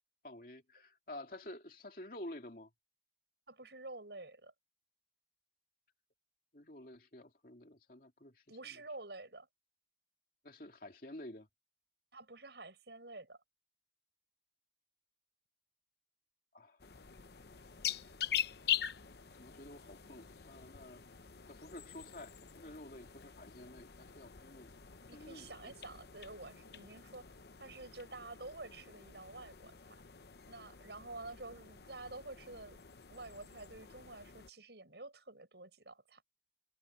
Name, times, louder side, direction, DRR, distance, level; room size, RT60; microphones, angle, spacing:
voice 1, 0.2-2.7 6.5-8.6 10.4-11.5 16.5-16.8 19.4-21.0 21.4-24.7 25.1-25.7, left 1 dB, 50° left, 2.7 m, -50 dB
voice 2, 3.5-4.5 8.5-9.5 12.1-13.4 25.1-27.2 27.6-30.0 30.5-32.8 33.1-36.2, right 2 dB, 75° right, 6.3 m, -49 dB
sound 1, 16.8-34.5, left 10 dB, 65° left, 0.9 m, -44 dB
head